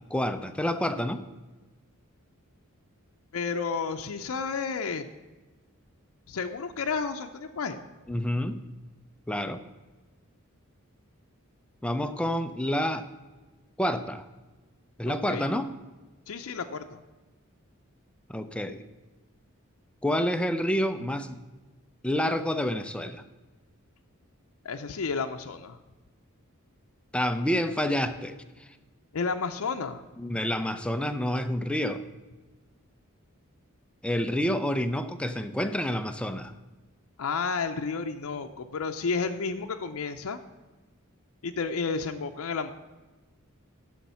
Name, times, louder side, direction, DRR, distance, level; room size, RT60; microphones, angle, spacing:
voice 1, 0.1-1.2 8.1-8.6 9.3-9.6 11.8-13.1 13.8-14.3 15.0-15.7 18.3-18.8 20.0-21.4 22.0-23.2 27.1-28.8 30.2-32.0 34.0-36.5, equal, 5° left, 9 dB, 0.4 m, -28 dB
voice 2, 3.3-5.1 6.3-7.9 15.1-15.5 16.3-17.0 24.6-25.8 29.1-30.0 37.2-40.4 41.4-42.7, left 5 dB, 80° left, 5 dB, 0.5 m, -31 dB
10.5 x 6.4 x 5.5 m, 1.2 s
head